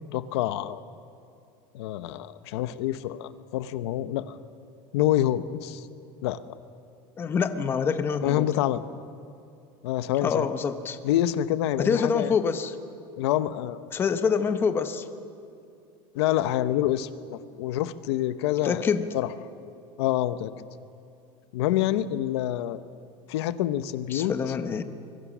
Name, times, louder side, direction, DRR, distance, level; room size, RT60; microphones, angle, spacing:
voice 1, 0.1-0.8 1.7-4.4 4.9-5.9 6.2-6.4 8.2-8.8 9.8-10.5 11.0-12.4 13.2-13.8 16.1-19.3 20.0-20.5 21.5-22.8 23.3-24.3, left 13 dB, 85° left, 13 dB, 1.0 m, -27 dB
voice 2, 7.2-8.5 10.2-11.0 11.8-12.7 13.9-15.1 18.6-19.1 24.1-24.8, left 6 dB, 15° left, 9 dB, 0.8 m, -26 dB
25.0 x 23.0 x 6.2 m, 2.5 s
cardioid pair, 180°, 13 cm